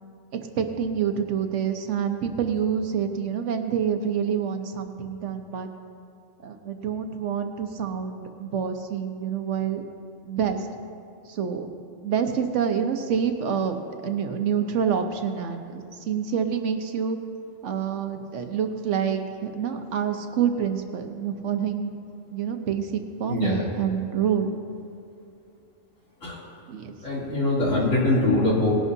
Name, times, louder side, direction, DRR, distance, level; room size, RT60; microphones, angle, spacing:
voice 1, 0.6-5.7 6.4-9.8 10.2-10.7 11.3-11.7 12.0-13.8 14.0-17.2 17.6-21.9 22.3-24.5 26.7-27.0, right 7 dB, 65° right, 6 dB, 1.1 m, -27 dB
voice 2, 23.3-23.7 26.2-26.4 27.0-28.7, left 2 dB, 75° left, -7 dB, 3.4 m, -23 dB
19.5 x 11.0 x 2.7 m, 2.6 s
omnidirectional pair, 1.3 m